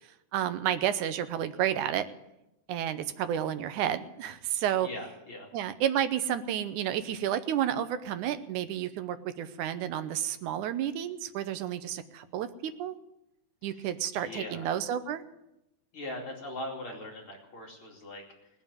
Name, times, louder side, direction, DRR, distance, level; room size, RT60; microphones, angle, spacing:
voice 1, 0.3-2.1 2.7-4.9 5.5-12.9 13.6-15.2, right 10 dB, 80° right, 11 dB, 2.3 m, -31 dB
voice 2, 4.8-5.5 13.6-14.7 15.9-18.2, left 1 dB, 45° left, -1 dB, 3.3 m, -41 dB
19.5 x 7.0 x 9.7 m, 0.89 s
omnidirectional pair, 3.5 m